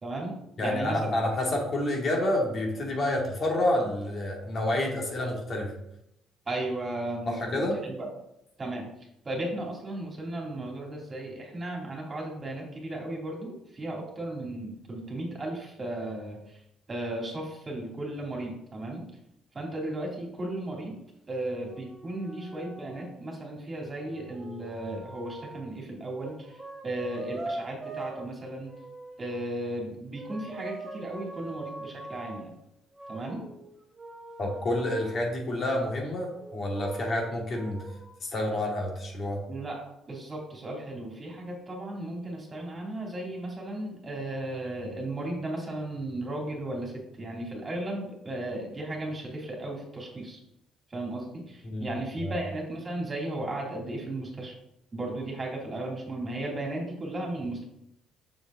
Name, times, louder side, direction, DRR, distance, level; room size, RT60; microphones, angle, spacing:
voice 1, 0.0-1.2 6.5-8.1 8.6-8.9 9.2-16.6 16.9-19.0 19.5-21.0 21.3-28.7 29.2-32.6 33.1-33.4 39.5-39.8 40.1-50.4 50.9-54.5 54.9-57.7, right 1 dB, 30° right, -1 dB, 2.7 m, -35 dB
voice 2, 0.6-5.7 7.3-7.8 34.4-37.8 38.2-39.4 51.6-51.9 52.2-52.3, left 1 dB, 45° left, -1 dB, 2.3 m, -29 dB
sound 1, 20.8-20.9 21.7-23.1 24.0-25.7 26.2-28.3 28.7-29.4 30.1-32.5 32.9-35.2 36.0-38.0, right 2 dB, 15° right, 2.9 m, -42 dB
6.6 x 6.4 x 3.7 m, 0.80 s
supercardioid pair, 70°, 0 cm